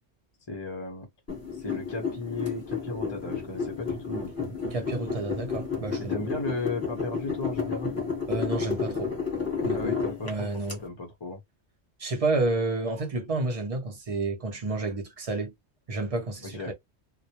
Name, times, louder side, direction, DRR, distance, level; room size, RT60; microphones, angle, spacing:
voice 1, 0.5-1.1 1.5-4.5 6.0-8.0 9.7-11.4 16.4-16.7, left 3 dB, 30° left, 0.5 m, -35 dB
sound 1, 1.3-10.7, left 5 dB, 15° left, 1.0 m, -31 dB
voice 2, 4.7-6.1 8.3-9.1 9.6-10.8 12.0-15.5 15.9-16.7, right 2 dB, 40° right, 0.5 m, -30 dB
2.2 x 2.0 x 2.8 m
omnidirectional pair, 1.2 m